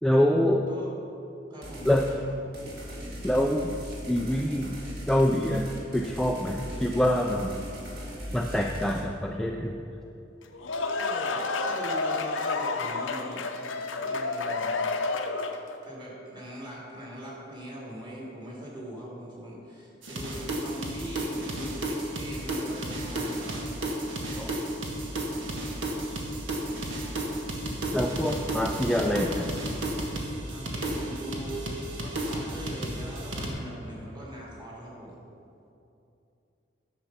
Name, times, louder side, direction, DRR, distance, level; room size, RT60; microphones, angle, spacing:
voice 1, 0.0-0.7 1.9-2.1 3.2-3.7 4.1-4.8 5.1-7.6 8.3-9.8 24.4-24.5 27.9-29.6, left 1 dB, 5° left, 1 dB, 0.3 m, -25 dB
voice 2, 1.5-2.3 10.9-13.5 14.0-14.9 15.8-23.7 30.5-35.2, equal, 25° right, -5 dB, 2.4 m, -41 dB
sound 1, 1.6-2.1 2.5-9.0, equal, 50° right, 2.1 m, -39 dB
sound 2, 10.4-15.7, left 3 dB, 75° left, 0.7 m, -30 dB
sound 3, 20.0-33.5, right 1 dB, 75° right, 1.4 m, -33 dB
9.9 x 6.9 x 5.8 m, 2.7 s
head